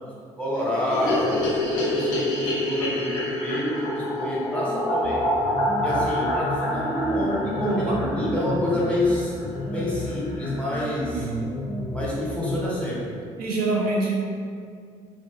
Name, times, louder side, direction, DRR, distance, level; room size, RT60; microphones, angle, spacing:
voice 1, 0.4-1.3 1.8-5.3 5.8-9.3 9.7-11.2 11.9-13.1, left 1 dB, 5° left, -6 dB, 0.9 m, -27 dB
sound 1, 0.9-9.1 9.4-9.5 9.7-9.8 10.1-10.2 10.4-11.0, left 1 dB, 85° left, 0.5 m, -27 dB
sound 2, 4.7-12.7, left 2 dB, 25° left, 0.3 m, -33 dB
voice 2, 7.6-8.5 11.1-11.5 13.4-14.2, right 2 dB, 60° right, -4 dB, 0.4 m, -26 dB
2.5 x 2.1 x 2.5 m, 2.3 s
hypercardioid pair, 55°, 17 cm